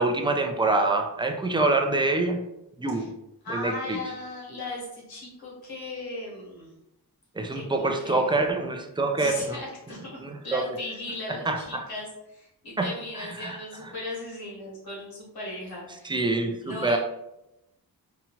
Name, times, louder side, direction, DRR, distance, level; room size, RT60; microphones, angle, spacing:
voice 1, 0.0-2.4 2.8-3.1 3.5-4.0 7.4-9.6 10.2-10.6 11.3-11.8 12.8-12.9 13.2-13.6 16.0-17.0, right 2 dB, 15° right, 4 dB, 0.3 m, -26 dB
voice 2, 3.4-6.7 7.5-8.4 9.2-16.2 16.6-17.0, left 2 dB, 70° left, -4 dB, 1.3 m, -37 dB
2.8 x 2.3 x 2.8 m, 0.88 s
cardioid pair, 90°, 38 cm